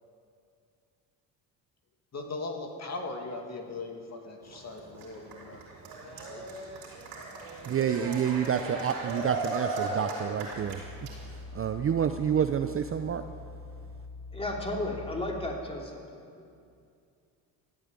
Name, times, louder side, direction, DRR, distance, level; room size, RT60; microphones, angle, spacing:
voice 1, 2.1-5.7 6.1-6.5, left 3 dB, 40° left, 3 dB, 2.2 m, -39 dB
Cheering, 4.4-11.4, right 2 dB, 80° right, 4.3 m, -37 dB
voice 2, 7.7-10.8 11.5-13.3, right 8 dB, 30° right, 8 dB, 0.6 m, -28 dB
sound 1, 10.5-15.6, left 3 dB, 90° left, 3.9 m, -44 dB
voice 3, 14.3-16.0 16.3-16.5, left 1 dB, 15° left, 0 dB, 3.1 m, -34 dB
14.5 x 8.9 x 8.9 m, 2.4 s
supercardioid pair, 85°, 42 cm